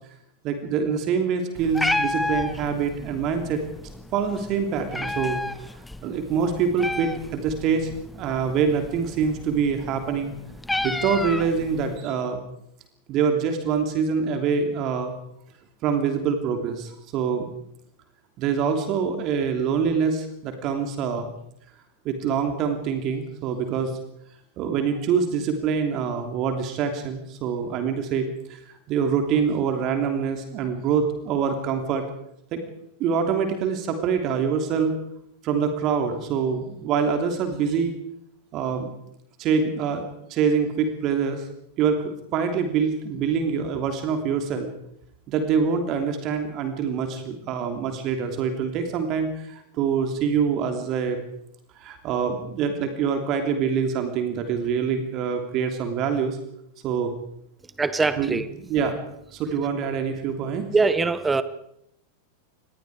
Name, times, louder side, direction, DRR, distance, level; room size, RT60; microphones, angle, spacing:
voice 1, 0.4-3.6 4.1-5.4 6.0-7.9 8.1-10.3 10.8-12.4 13.1-15.1 15.8-17.5 18.4-21.3 22.0-23.9 24.6-28.6 28.9-32.0 32.5-32.6 33.0-34.9 35.4-37.9 38.5-38.9 39.4-40.0 40.3-41.5 41.8-44.7 45.3-51.2 51.8-56.4 56.8-57.1 58.2-59.0 59.3-60.7, right 6 dB, 35° right, 6 dB, 3.1 m, -25 dB
Meow, 1.5-12.0, left 2 dB, 5° left, 1.2 m, -32 dB
voice 2, 57.8-58.4 60.7-61.4, right 4 dB, 10° right, 15 dB, 1.1 m, -22 dB
27.0 x 20.5 x 4.9 m, 0.75 s
figure-of-eight pair, 90°, 0 cm